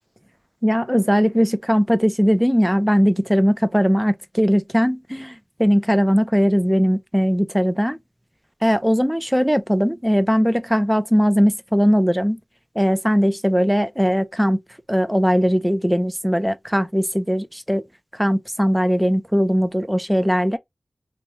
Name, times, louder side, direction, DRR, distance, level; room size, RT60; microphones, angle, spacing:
voice 1, 0.6-8.0 8.6-12.4 12.8-14.6 14.9-17.8 18.1-20.6, equal, 5° right, 0.3 m, -19 dB
2.8 x 2.1 x 3.0 m
wide cardioid pair, 75°, 0 cm